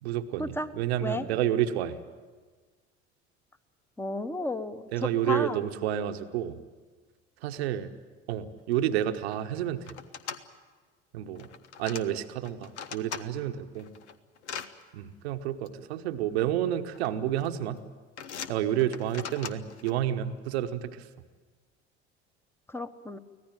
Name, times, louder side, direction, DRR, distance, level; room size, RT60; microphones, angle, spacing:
voice 1, 0.0-2.0 4.9-6.6 7.4-7.9 8.3-9.9 11.1-11.5 11.8-13.9 14.9-17.8 18.5-21.1, right 11 dB, 65° right, 9 dB, 1.1 m, -30 dB
voice 2, 4.0-5.6 22.7-23.2, left 2 dB, 5° left, 12 dB, 1.2 m, -33 dB
sound 1, 8.7-8.8 9.0-9.4 9.8-10.4 11.3-12.0 12.4-13.2 13.7-14.7 15.7-15.8 16.7-17.1 17.4-17.7 18.2-19.9, left 7 dB, 75° left, 1.1 m, -40 dB
24.5 x 17.5 x 9.0 m, 1.4 s
figure-of-eight pair, 65°, 34 cm